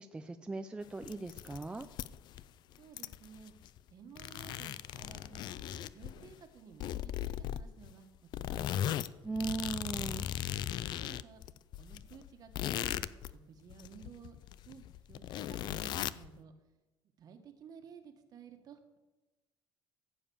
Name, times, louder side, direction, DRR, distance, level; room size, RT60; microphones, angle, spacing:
voice 1, 0.0-1.9 9.2-10.3, right 3 dB, 10° right, 8 dB, 0.4 m, -38 dB
sound 1, 0.9-2.4 2.7-3.9 4.2-6.3 6.8-7.9 8.3-13.3 13.7-16.3, left 11 dB, 55° left, 0.4 m, -38 dB
voice 2, 2.8-3.5 3.9-8.9 10.8-11.5 11.8-14.4 14.6-16.5 17.2-19.0, right 7 dB, 45° right, 6 dB, 1.6 m, -55 dB
15.0 x 7.2 x 7.1 m, 1.1 s
cardioid pair, 150°, 9 cm